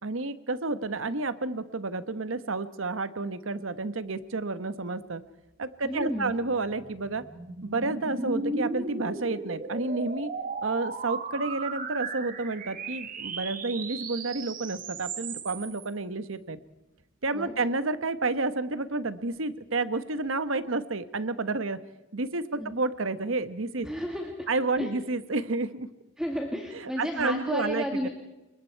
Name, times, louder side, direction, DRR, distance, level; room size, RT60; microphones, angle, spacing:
voice 1, 0.0-5.2 5.6-7.2 7.6-10.3 10.6-16.6 17.2-21.8 22.1-23.9 24.5-25.9 26.7-28.1, right 3 dB, 90° right, 13 dB, 1.2 m, -30 dB
voice 2, 5.8-6.3 17.3-17.5 22.6-22.7 23.8-24.3 24.8-24.9 26.2-28.1, equal, 5° right, 1 dB, 2.0 m, -32 dB
sound 1, 6.1-15.9, right 3 dB, 40° right, 1.9 m, -36 dB
29.0 x 22.0 x 4.6 m, 1.1 s
head